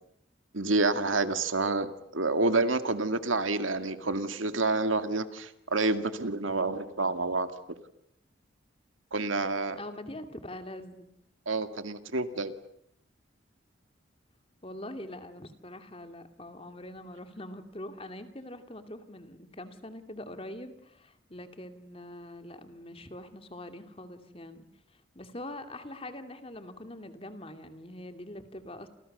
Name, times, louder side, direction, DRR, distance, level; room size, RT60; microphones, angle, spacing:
voice 1, 0.5-7.5 9.1-9.8 11.5-12.5, right 3 dB, 80° right, 9 dB, 2.2 m, -28 dB
voice 2, 9.8-11.1 14.6-28.9, left 1 dB, 30° left, 7 dB, 2.6 m, -43 dB
29.5 x 28.0 x 6.8 m, 0.71 s
head